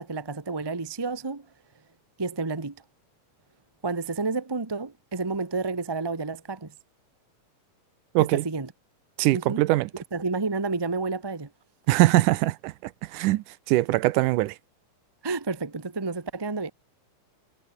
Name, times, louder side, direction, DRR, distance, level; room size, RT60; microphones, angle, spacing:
voice 1, 0.0-1.5 2.2-2.8 3.8-6.7 8.2-8.7 9.3-9.6 10.1-11.5 15.2-16.7, right 3 dB, 30° right, 0.4 m, -30 dB
voice 2, 9.2-9.9 11.9-12.7 13.1-14.6, right 18 dB, 85° right, 2.3 m, -22 dB
omnidirectional pair, 3.6 m